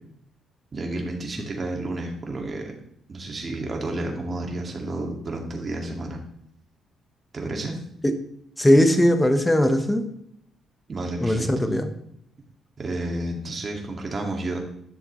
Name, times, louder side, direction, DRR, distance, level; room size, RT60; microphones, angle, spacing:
voice 1, 0.7-2.7 3.1-6.2 7.3-7.8 10.9-11.7 12.8-14.6, right 2 dB, 35° right, 1 dB, 2.2 m, -31 dB
voice 2, 8.6-10.1 11.2-11.9, equal, 10° left, 7 dB, 1.2 m, -19 dB
11.5 x 6.4 x 3.2 m, 0.72 s
cardioid pair, 90°, 0 cm